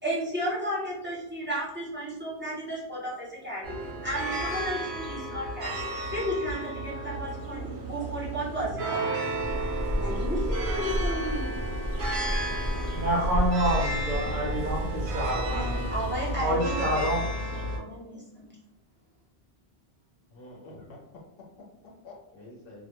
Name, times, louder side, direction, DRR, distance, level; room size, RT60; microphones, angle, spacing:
voice 1, 0.0-5.8 6.1-9.2 10.0-11.5 15.5-18.5, equal, 15° right, -7 dB, 0.6 m, -34 dB
sound 1, 3.6-17.8, right 1 dB, 80° right, 0.8 m, -33 dB
sound 2, 9.4-16.6, left 1 dB, 40° left, 0.4 m, -32 dB
voice 2, 12.9-15.8 16.3-17.2, right 1 dB, 55° right, -3 dB, 0.7 m, -28 dB
voice 3, 20.3-22.9, left 2 dB, 65° left, -1 dB, 0.8 m, -48 dB
2.1 x 2.1 x 2.9 m, 0.81 s
omnidirectional pair, 1.1 m